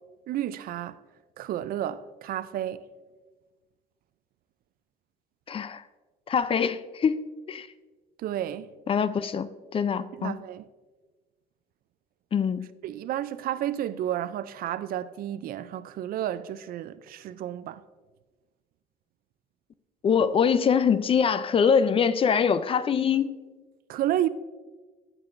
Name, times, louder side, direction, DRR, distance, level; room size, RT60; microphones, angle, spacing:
voice 1, 0.3-1.0 1.4-2.9 8.2-8.7 10.1-10.7 12.8-17.8 23.9-24.3, right 12 dB, 60° right, 0.4 m, -31 dB
voice 2, 5.5-5.8 6.3-7.2 7.5-7.7 8.9-10.3 12.3-12.7 20.0-23.4, left 6 dB, 35° left, 0.4 m, -24 dB
15.0 x 6.1 x 2.5 m
cardioid pair, 110°, 17 cm